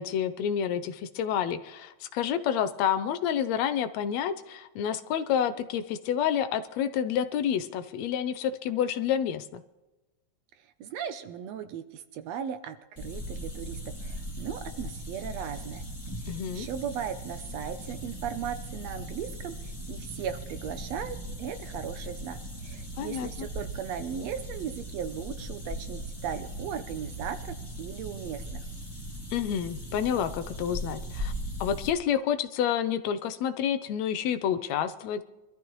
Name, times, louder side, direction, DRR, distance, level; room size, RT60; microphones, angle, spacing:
voice 1, 0.0-9.6 16.3-16.7 23.0-23.5 29.3-31.3 31.6-35.2, left 9 dB, 75° left, 12 dB, 1.8 m, -29 dB
voice 2, 10.8-15.8 16.2-19.5 19.9-28.6, right 8 dB, 75° right, 9 dB, 1.7 m, -37 dB
sound 1, 13.0-31.9, equal, 10° left, 1.6 m, -39 dB
23.0 x 13.0 x 3.1 m, 1.1 s
omnidirectional pair, 3.4 m